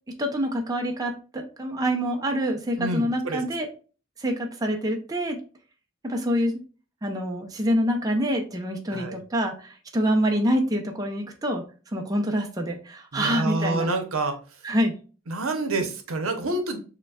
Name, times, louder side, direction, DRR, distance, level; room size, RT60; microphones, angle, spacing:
voice 1, 0.2-3.7 4.2-5.4 6.0-6.6 7.0-11.6 11.9-13.9 14.6-14.9, equal, 15° right, 2 dB, 0.5 m, -26 dB
voice 2, 2.8-3.4 8.9-9.2 13.1-14.4 15.3-16.8, right 2 dB, 80° right, 6 dB, 0.7 m, -27 dB
6.5 x 2.2 x 2.3 m, 0.36 s
head